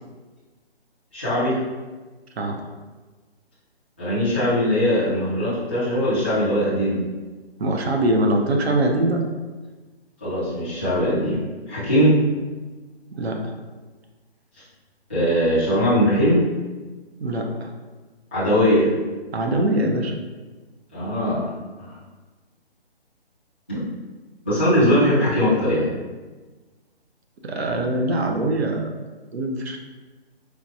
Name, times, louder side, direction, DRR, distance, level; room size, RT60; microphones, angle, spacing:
voice 1, 1.1-1.6 4.0-7.0 10.2-11.4 11.7-12.2 15.1-16.4 18.3-18.9 20.9-21.5 21.8-22.0 23.7-23.8 24.4-25.9, equal, 10° left, -14 dB, 0.4 m, -20 dB
voice 2, 7.6-9.2 13.1-13.4 17.2-17.7 19.3-20.1 27.4-28.9 29.3-29.8, right 1 dB, 75° right, 2 dB, 0.7 m, -22 dB
4.4 x 2.2 x 2.7 m, 1.3 s
figure-of-eight pair, 150°, 32 cm